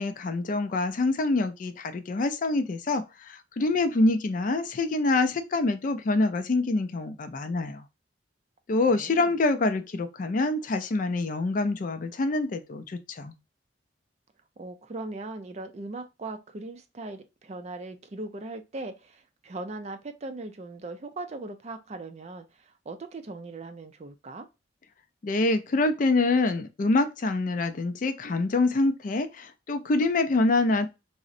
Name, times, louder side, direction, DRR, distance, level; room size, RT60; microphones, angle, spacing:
voice 1, 0.0-7.8 8.7-13.3 25.2-30.9, left 2 dB, 45° left, 0.4 m, -26 dB
voice 2, 8.9-9.3 14.6-24.5, right 2 dB, 35° right, 0.4 m, -39 dB
3.7 x 2.1 x 2.5 m
head